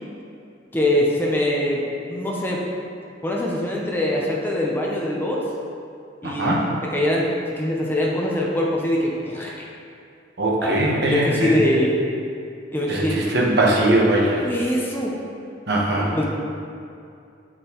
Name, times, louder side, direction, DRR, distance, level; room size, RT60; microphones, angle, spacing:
voice 1, 0.7-1.8 2.1-2.6 3.2-5.4 6.2-7.3 7.5-9.6 10.6-12.0 12.7-13.2 13.8-13.9 14.4-15.2 15.9-16.2, left 1 dB, 10° left, -3 dB, 0.7 m, -23 dB
voice 2, 6.2-6.7 10.4-11.5 12.9-14.4 15.7-16.1, right 1 dB, 60° right, -3 dB, 1.2 m, -20 dB
8.2 x 6.4 x 3.0 m, 2.5 s
head